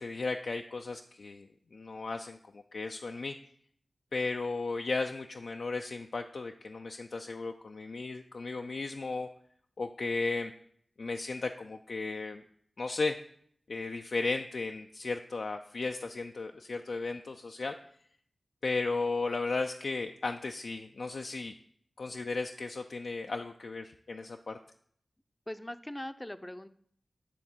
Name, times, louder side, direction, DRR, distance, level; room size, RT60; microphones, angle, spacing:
voice 1, 0.0-3.4 4.1-9.3 9.8-10.5 11.0-12.4 12.8-13.2 13.7-17.7 18.6-21.5 22.0-24.6, left 3 dB, 70° left, 4 dB, 0.4 m, -35 dB
voice 2, 25.5-26.7, left 1 dB, 15° left, 11 dB, 0.5 m, -40 dB
10.0 x 3.6 x 7.2 m, 0.64 s
wide cardioid pair, 75°, 0 cm